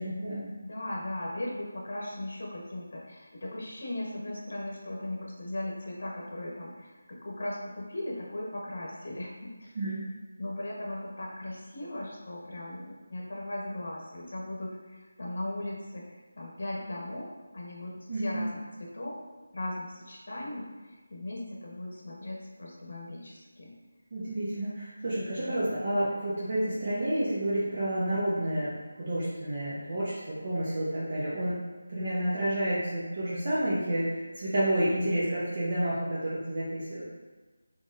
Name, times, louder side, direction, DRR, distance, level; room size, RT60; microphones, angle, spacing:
voice 1, 0.0-0.5 9.7-10.0 18.1-18.4 24.1-31.6 31.9-37.1, right 1 dB, 35° right, -9 dB, 0.9 m, -30 dB
voice 2, 0.6-9.7 10.4-16.0 16.4-19.2 19.5-23.7, left 1 dB, 60° left, -3 dB, 1.2 m, -38 dB
4.6 x 3.9 x 2.6 m, 1.3 s
figure-of-eight pair, 175°, 0 cm